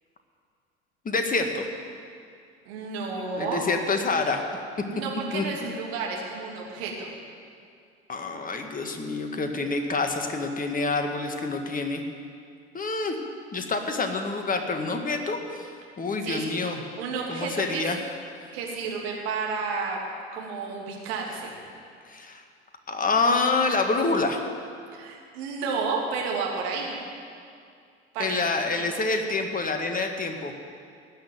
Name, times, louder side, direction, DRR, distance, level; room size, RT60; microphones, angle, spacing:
voice 1, 1.0-1.6 3.4-4.4 5.3-5.4 8.1-12.0 12.7-13.1 13.5-15.7 16.0-16.8 17.3-18.0 22.1-22.4 22.9-24.4 28.2-30.5, left 3 dB, 25° left, 5 dB, 1.9 m, -27 dB
voice 2, 2.6-3.6 4.9-7.1 16.2-17.8 18.5-20.0 20.3-21.5 24.9-26.9 28.1-29.0, right 4 dB, 65° right, -2 dB, 3.0 m, -31 dB
18.0 x 6.5 x 9.5 m, 2.3 s
figure-of-eight pair, 65°, 33 cm